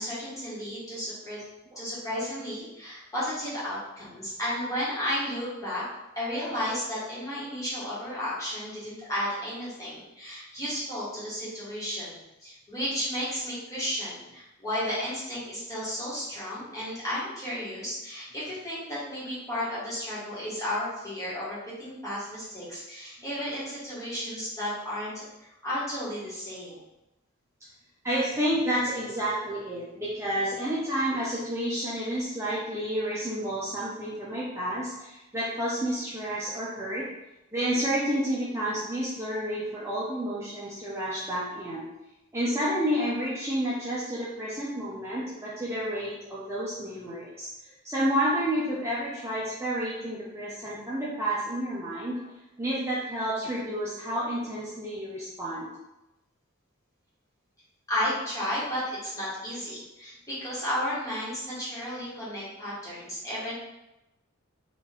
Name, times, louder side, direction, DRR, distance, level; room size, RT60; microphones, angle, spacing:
voice 1, 0.0-1.4 1.7-5.8 6.1-26.8 57.9-63.5, equal, 15° left, -9 dB, 1.4 m, -33 dB
voice 2, 28.0-37.1 37.5-41.9 42.3-47.5 47.8-52.2 52.6-55.7, equal, 15° right, -8 dB, 0.6 m, -30 dB
3.7 x 2.5 x 3.7 m, 0.95 s
head